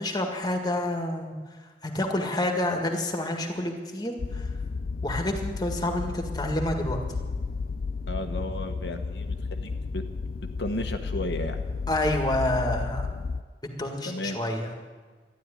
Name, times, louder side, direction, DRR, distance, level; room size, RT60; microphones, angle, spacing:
voice 1, 0.0-1.4 1.8-4.5 5.0-7.0 11.9-13.1 13.8-14.7, left 1 dB, 25° left, 3 dB, 1.8 m, -28 dB
sound 1, 4.2-13.4, left 4 dB, 55° left, 0.4 m, -32 dB
voice 2, 8.1-10.0 10.6-11.6 14.0-14.4, left 1 dB, 80° left, 5 dB, 1.2 m, -34 dB
12.5 x 11.5 x 9.9 m, 1.4 s
head